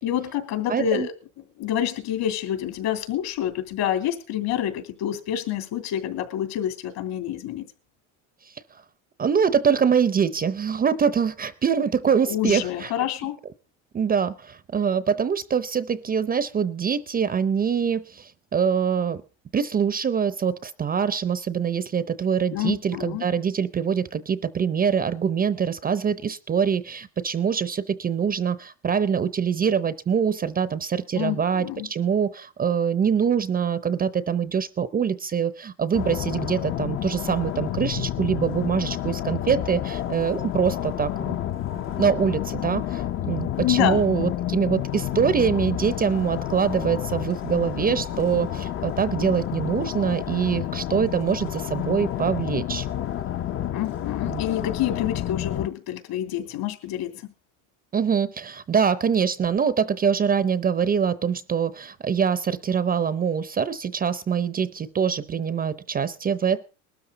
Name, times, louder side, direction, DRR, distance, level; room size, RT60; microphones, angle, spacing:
voice 1, 0.0-1.1 1.6-7.7 12.3-13.4 22.5-23.2 31.1-31.9 43.6-44.0 53.7-57.3, left 11 dB, 65° left, 6 dB, 3.4 m, -27 dB
voice 2, 0.7-1.1 9.2-12.9 13.9-19.2 19.5-41.4 42.0-52.9 54.3-54.4 57.9-66.6, right 7 dB, 25° right, 15 dB, 0.6 m, -24 dB
sound 1, 35.9-55.7, left 11 dB, 35° left, 0.6 m, -30 dB
20.0 x 13.0 x 4.0 m, 0.35 s
supercardioid pair, 120°, 39 cm